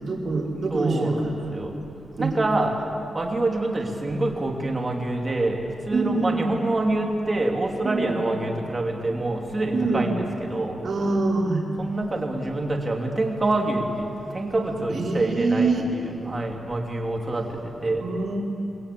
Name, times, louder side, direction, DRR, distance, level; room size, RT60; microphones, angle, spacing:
voice 1, 0.0-1.5 2.2-2.3 5.9-6.4 7.8-8.3 9.7-10.1 10.8-11.6 14.9-15.8 18.0-18.4, right 3 dB, 50° right, -2 dB, 4.4 m, -25 dB
voice 2, 0.7-1.7 2.2-2.7 3.1-10.8 11.8-14.1 14.3-18.0, right 2 dB, 25° right, 1 dB, 3.2 m, -26 dB
29.5 x 21.0 x 8.8 m, 2.7 s
wide cardioid pair, 165°, 0 cm